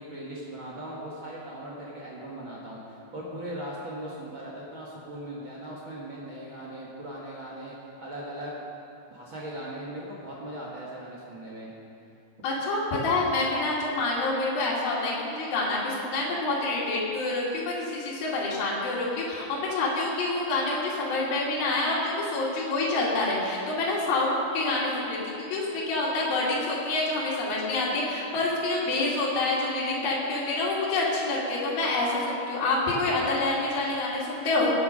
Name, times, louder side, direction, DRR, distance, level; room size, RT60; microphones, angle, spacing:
voice 1, 0.0-8.6 9.1-11.7, right 1 dB, 50° right, -5 dB, 1.5 m, -39 dB
voice 2, 12.4-34.7, left 2 dB, 65° left, -6 dB, 4.3 m, -27 dB
16.5 x 10.5 x 5.3 m, 2.7 s
omnidirectional pair, 4.7 m